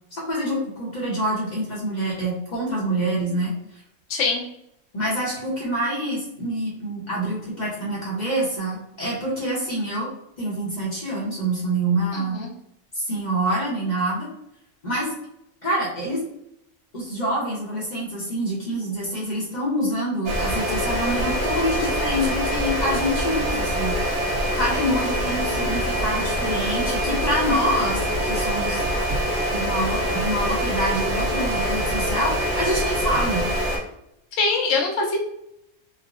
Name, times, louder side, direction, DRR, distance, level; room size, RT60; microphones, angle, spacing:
voice 1, 0.1-3.5 4.9-10.1 10.4-12.4 12.9-14.3 14.8-15.1 15.6-16.2 16.9-24.2 24.5-28.8 29.5-33.5, right 1 dB, 40° left, -5 dB, 0.8 m, -26 dB
voice 2, 4.1-4.4 12.1-12.5 34.4-35.2, left 3 dB, 65° left, 0 dB, 1.0 m, -23 dB
sound 1, 20.2-33.8, equal, 60° right, 1.0 m, -24 dB
3.4 x 2.0 x 2.4 m, 0.80 s
omnidirectional pair, 1.4 m